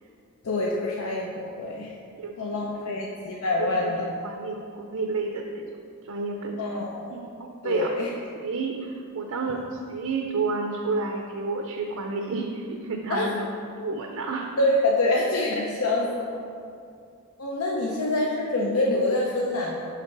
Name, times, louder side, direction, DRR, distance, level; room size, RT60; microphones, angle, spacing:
voice 1, 0.4-1.9 2.4-4.0 6.6-7.1 7.6-8.1 13.1-13.3 14.6-16.4 17.4-19.9, left 2 dB, 80° left, -2 dB, 0.6 m, -26 dB
voice 2, 3.6-5.7 6.1-6.7 7.1-7.9 8.4-9.6 9.9-13.5 13.8-14.5, right 3 dB, 85° right, 2 dB, 0.6 m, -30 dB
5.8 x 5.2 x 4.6 m, 2.4 s
head